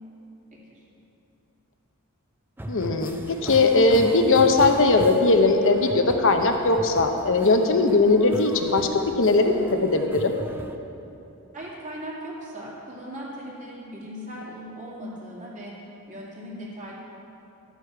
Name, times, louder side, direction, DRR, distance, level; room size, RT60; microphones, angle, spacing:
sound 1, 2.6-10.8, right 1 dB, 10° right, 0.5 m, -38 dB
voice 1, 2.7-8.9 9.2-9.5 9.8-10.3, left 3 dB, 60° left, 5 dB, 0.9 m, -19 dB
voice 2, 11.5-16.9, equal, 35° right, -5 dB, 2.3 m, -38 dB
12.5 x 8.2 x 4.7 m, 2.8 s
head